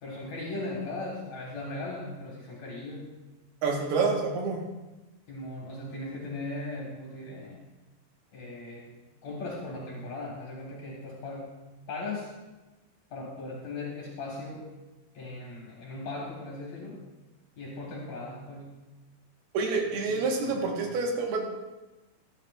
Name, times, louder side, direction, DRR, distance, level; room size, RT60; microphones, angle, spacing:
voice 1, 0.0-3.1 5.3-7.6 8.3-8.9 9.2-11.6 11.9-12.3 13.1-14.7 15.1-17.0 17.6-18.8 20.1-20.2, left 2 dB, 55° left, -3 dB, 2.4 m, -38 dB
voice 2, 3.6-4.6 19.5-21.5, right 4 dB, 85° right, 1 dB, 3.3 m, -28 dB
13.5 x 12.5 x 2.5 m, 1.1 s
omnidirectional pair, 4.5 m